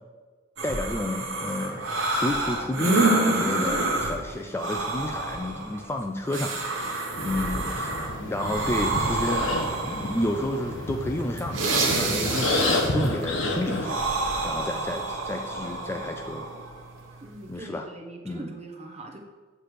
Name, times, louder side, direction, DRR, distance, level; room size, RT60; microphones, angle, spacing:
voice 1, 0.6-6.6 7.2-7.9 8.2-9.5 9.8-14.0 14.4-16.4 17.5-17.9 18.2-18.5, left 1 dB, 10° left, 4 dB, 0.3 m, -31 dB
sound 1, 0.6-17.6, right 2 dB, 75° right, 1.2 m, -28 dB
sound 2, 7.1-13.9, left 2 dB, 85° left, 1.1 m, -30 dB
voice 2, 17.2-19.2, right 2 dB, 35° right, 2 dB, 0.9 m, -41 dB
7.7 x 3.3 x 6.4 m, 1.4 s
head